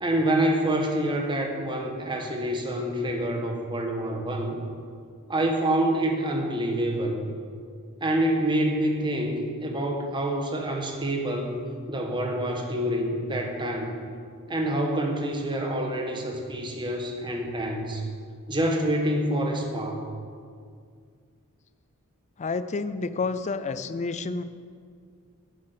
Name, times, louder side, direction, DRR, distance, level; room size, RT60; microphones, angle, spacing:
voice 1, 0.0-4.6 5.3-7.2 8.0-11.6 11.9-14.0 14.5-18.0 18.5-20.0, right 1 dB, 20° right, 2 dB, 1.3 m, -27 dB
voice 2, 22.4-24.4, left 4 dB, 30° left, 13 dB, 0.4 m, -29 dB
9.7 x 8.6 x 6.7 m, 2.2 s
head